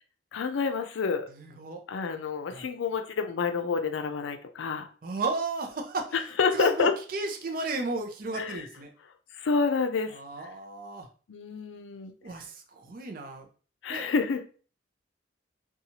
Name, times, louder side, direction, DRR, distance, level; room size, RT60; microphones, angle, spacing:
voice 1, 0.3-1.3 1.9-4.9 6.1-6.9 8.3-8.6 9.4-10.2 11.3-12.1 13.8-14.4, left 5 dB, 85° left, 7 dB, 0.4 m, -28 dB
voice 2, 1.4-1.8 2.5-2.6 5.0-6.1 6.5-8.9 10.1-11.1 12.2-13.4 13.9-14.1, right 3 dB, 50° right, 3 dB, 0.5 m, -34 dB
2.7 x 2.3 x 2.8 m, 0.39 s
head